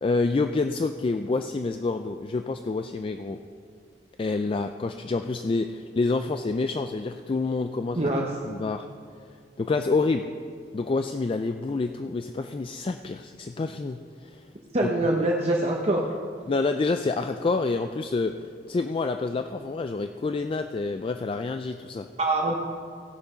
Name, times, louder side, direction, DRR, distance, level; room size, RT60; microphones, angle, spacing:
voice 1, 0.0-3.4 4.2-8.1 8.5-8.8 9.6-10.2 10.7-14.4 14.8-14.9 16.5-22.1, left 3 dB, 30° left, 7 dB, 0.3 m, -28 dB
voice 2, 8.0-8.3 14.7-16.0 22.2-22.6, right 1 dB, 35° right, -2 dB, 0.9 m, -24 dB
16.5 x 6.8 x 5.7 m, 2.2 s
head